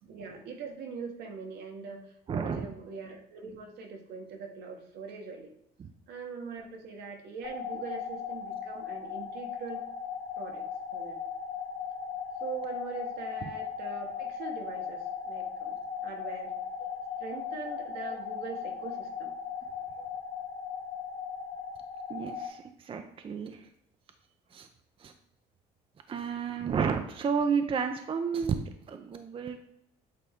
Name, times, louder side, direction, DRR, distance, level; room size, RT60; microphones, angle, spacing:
voice 1, 0.0-5.5 6.1-9.8 10.4-10.6 10.9-11.2 12.4-16.9 17.2-19.3 20.0-20.1, right 5 dB, 75° right, 3 dB, 1.3 m, -42 dB
voice 2, 2.3-2.7 5.8-5.9 13.4-13.5 22.1-23.7 24.5-24.7 25.0-25.1 26.1-29.6, right 6 dB, 30° right, 7 dB, 0.5 m, -32 dB
sound 1, 7.4-22.5, left 7 dB, 65° left, 1.0 m, -37 dB
8.4 x 3.5 x 3.5 m, 0.75 s
cardioid pair, 110°, 17 cm